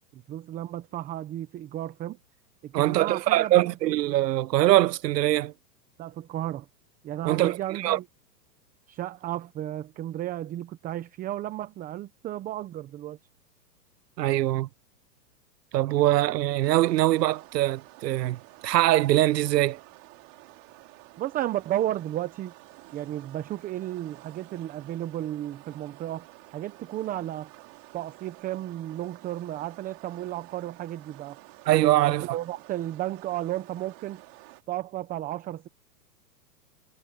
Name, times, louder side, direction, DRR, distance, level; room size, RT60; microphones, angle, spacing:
voice 1, 0.1-2.2 2.6-3.7 6.0-6.7 7.0-8.1 8.9-13.2 21.2-22.5 22.9-26.3 26.5-27.5 27.9-31.4 32.0-34.2 34.7-35.7, right 13 dB, 15° right, 0.8 m, -33 dB
voice 2, 2.7-5.5 7.2-8.0 14.2-14.7 15.7-18.4 18.6-19.8 31.7-32.3, right 15 dB, 75° right, 0.8 m, -23 dB
sound 1, 16.6-34.6, right 26 dB, 40° right, 2.7 m, -51 dB
hypercardioid pair, 140°, 50 cm